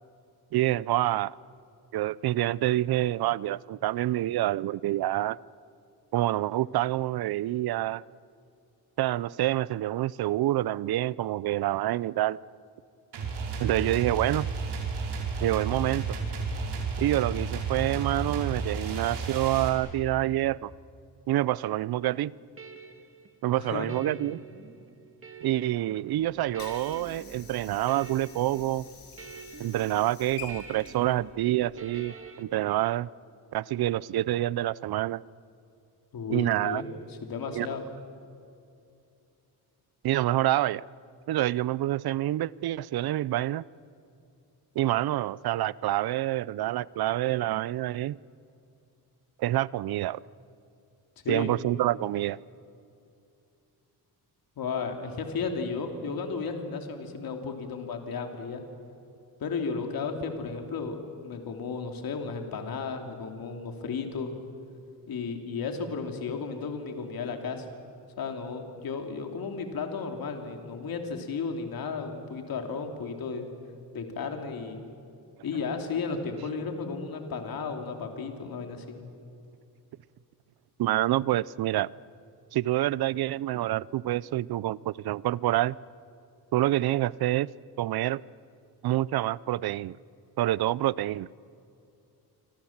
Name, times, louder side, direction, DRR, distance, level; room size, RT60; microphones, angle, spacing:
voice 1, 0.5-1.4 1.9-5.4 6.1-8.0 9.0-12.4 13.6-14.5 15.4-16.2 17.0-20.7 21.3-22.3 23.4-24.4 25.4-28.9 29.6-33.1 33.5-35.2 36.3-36.8 37.5-37.7 40.0-40.8 41.3-43.6 44.8-48.2 49.4-50.2 51.3-52.4 80.8-81.9 82.5-85.8 86.5-87.5 87.8-88.2 88.8-90.0 90.4-91.3, right 14 dB, 65° right, 22 dB, 0.6 m, -27 dB
sound 1, 13.1-19.7, right 4 dB, 85° right, 5.2 m, -32 dB
sound 2, 21.9-32.4, right 5 dB, 35° right, 1.6 m, -48 dB
voice 2, 23.5-24.0 36.1-37.8 51.2-51.5 54.6-58.6 59.4-64.3 65.1-67.7 68.2-73.5 73.9-74.8 75.4-79.0, left 5 dB, 60° left, 4 dB, 3.0 m, -34 dB
Water / Sink (filling or washing), 26.1-32.1, left 5 dB, 90° left, 7.2 m, -48 dB
28.0 x 25.5 x 7.3 m, 2.6 s
wide cardioid pair, 155°, 40 cm